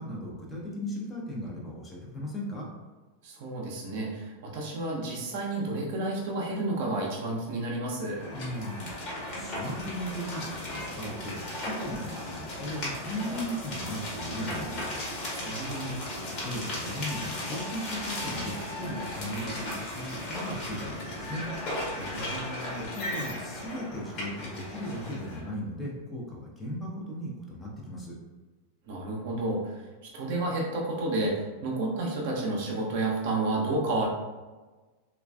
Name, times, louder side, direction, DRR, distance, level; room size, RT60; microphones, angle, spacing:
voice 1, 0.0-2.7 8.3-15.0 16.3-21.5 22.9-28.2, equal, 10° left, -3 dB, 0.6 m, -37 dB
voice 2, 3.2-8.2 15.3-16.0 21.9-22.9 28.9-29.9 30.1-34.1, right 2 dB, 50° right, -2 dB, 0.7 m, -31 dB
sound 1, 8.1-25.4, left 1 dB, 35° left, 1.1 m, -36 dB
3.1 x 2.3 x 2.2 m, 1.3 s
figure-of-eight pair, 90°, 0 cm